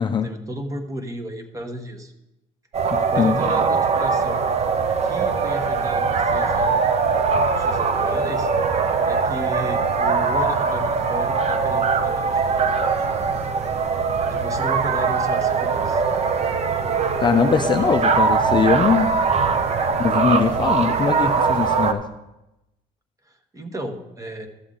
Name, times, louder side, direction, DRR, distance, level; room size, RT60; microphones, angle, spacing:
voice 1, 0.0-2.1 3.1-4.4 5.0-6.8 7.5-8.5 9.0-13.4 14.3-16.0 23.2-24.5, equal, 20° right, 5 dB, 1.1 m, -34 dB
sound 1, 2.7-21.9, right 5 dB, 40° right, 0.7 m, -21 dB
voice 2, 2.9-3.4 17.2-19.1 20.0-22.0, left 6 dB, 25° left, 6 dB, 0.5 m, -21 dB
12.5 x 7.0 x 3.9 m, 0.93 s
cardioid pair, 110°, 17 cm